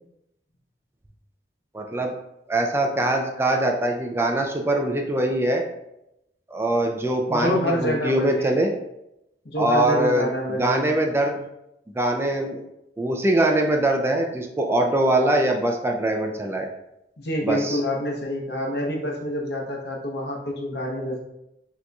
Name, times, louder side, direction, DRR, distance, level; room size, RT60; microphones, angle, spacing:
voice 1, 1.7-2.1 2.5-5.6 6.5-8.7 9.6-11.4 11.9-12.6 13.0-16.7 17.4-17.8, right 1 dB, 15° right, 2 dB, 0.3 m, -23 dB
voice 2, 7.3-8.6 9.4-10.9 17.2-21.3, equal, 65° left, 0 dB, 0.9 m, -27 dB
6.3 x 2.9 x 2.3 m, 0.86 s
head